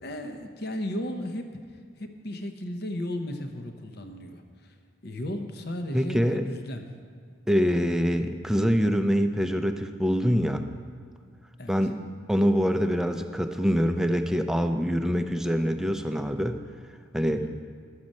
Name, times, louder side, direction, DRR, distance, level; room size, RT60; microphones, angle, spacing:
voice 1, 0.0-4.8 5.0-6.9 11.6-11.8 17.3-17.6, left 1 dB, 55° left, 6 dB, 0.7 m, -35 dB
voice 2, 5.9-6.4 7.5-10.6 11.7-12.0 12.3-16.6 17.1-17.5, equal, 5° right, 6 dB, 0.4 m, -25 dB
11.5 x 7.5 x 5.3 m, 2.1 s
head